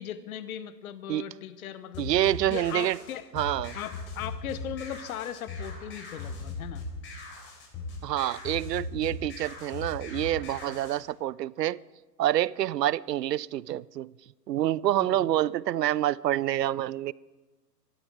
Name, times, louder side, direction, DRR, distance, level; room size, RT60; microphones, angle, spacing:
voice 1, 0.0-2.1 2.5-3.3 3.7-6.8 10.7-10.8 15.2-15.3, left 10 dB, 60° left, 1.0 m, -38 dB
sound 1, 1.9-11.0, left 3 dB, 25° left, 3.8 m, -39 dB
voice 2, 2.0-3.0 3.3-3.8 8.0-11.8 12.2-14.1 14.5-17.1, right 13 dB, 75° right, 0.6 m, -27 dB
28.0 x 12.5 x 3.7 m
hypercardioid pair, 125°, 49 cm